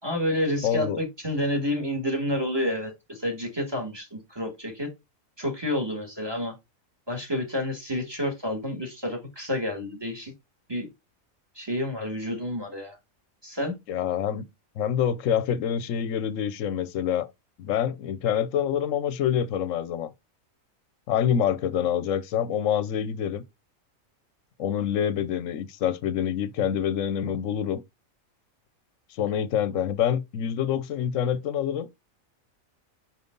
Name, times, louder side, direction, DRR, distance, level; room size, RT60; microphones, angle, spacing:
voice 1, 0.0-4.9 5.4-6.5 7.1-10.3 10.7-10.9 11.6-13.0 13.4-13.7, left 1 dB, 15° right, 2.2 m, -29 dB
voice 2, 0.6-1.0 13.9-14.4 14.8-17.3 17.6-20.1 21.1-23.4 24.6-27.8 29.2-31.9, left 9 dB, 70° left, 1.1 m, -26 dB
5.3 x 5.0 x 3.8 m
omnidirectional pair, 1.4 m